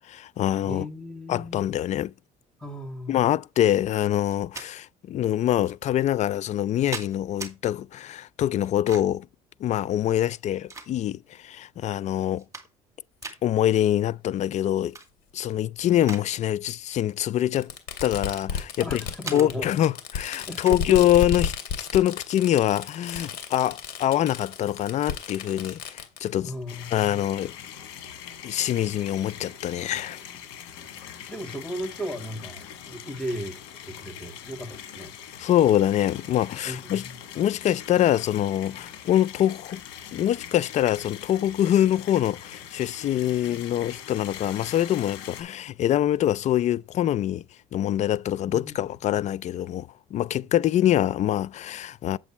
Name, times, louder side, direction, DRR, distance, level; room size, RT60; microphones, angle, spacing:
voice 1, 0.1-0.8 1.3-2.1 3.1-9.3 9.6-12.4 13.4-14.9 15.3-17.7 18.0-19.0 19.3-26.5 26.9-27.5 28.4-30.2 35.4-37.0 37.3-39.8 40.1-47.4 47.7-52.2, left 12 dB, 50° left, 0.4 m, -24 dB
voice 2, 0.7-1.6 2.6-3.2 18.8-19.7 20.3-20.8 26.4-27.2 30.8-33.6 33.8-35.1 36.6-37.2 48.4-49.0, equal, 5° left, 2.4 m, -36 dB
sound 1, 4.2-4.7 5.6-5.7 6.5-7.5 8.6-9.2 10.2-11.3 11.8-11.9 12.3-12.9 13.2-13.4 14.7-15.1 15.5-16.3 16.6-16.8 17.6-18.7 19.2-19.5 20.6-20.8, right 3 dB, 20° right, 2.3 m, -40 dB
Fireworks, 13.2-13.3 14.4-14.5 15.8-15.9 17.6-26.3, left 7 dB, 70° left, 2.3 m, -34 dB
sound 2, 26.7-45.4, left 9 dB, 90° left, 1.7 m, -42 dB
8.1 x 7.5 x 3.1 m
supercardioid pair, 90°, 16 cm